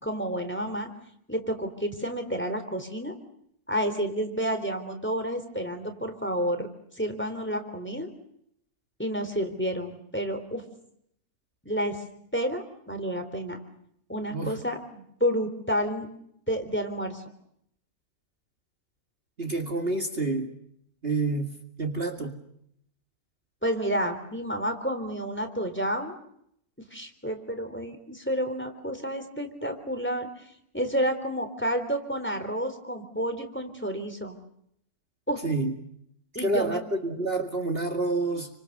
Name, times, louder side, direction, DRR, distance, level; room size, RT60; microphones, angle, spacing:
voice 1, 0.0-0.9 1.3-3.1 3.7-6.7 6.9-8.1 9.0-10.6 11.6-12.0 12.3-13.6 14.1-16.1 16.5-17.2 23.6-26.2 26.8-30.4 30.7-34.4 35.3-35.4 36.3-36.8, equal, 5° left, 6 dB, 3.7 m, -30 dB
voice 2, 19.4-20.5 21.0-21.5 21.8-22.3 35.4-35.7 36.4-38.5, right 2 dB, 40° right, 4 dB, 2.4 m, -28 dB
30.0 x 25.5 x 6.7 m, 0.72 s
omnidirectional pair, 1.6 m